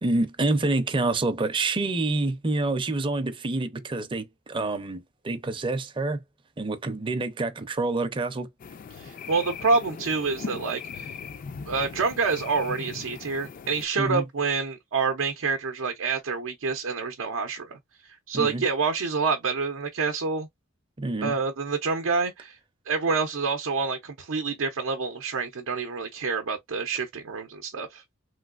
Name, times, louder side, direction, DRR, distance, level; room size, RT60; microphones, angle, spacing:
voice 1, 0.0-6.2 6.6-8.5 14.0-14.3 18.3-18.6 21.0-21.3, right 2 dB, 25° right, 0.5 m, -27 dB
sound 1, 8.6-13.9, left 5 dB, 45° left, 0.3 m, -39 dB
voice 2, 8.9-11.1 11.7-20.5 21.2-22.6 22.9-28.0, right 4 dB, 85° right, 0.5 m, -27 dB
3.2 x 2.9 x 2.4 m
head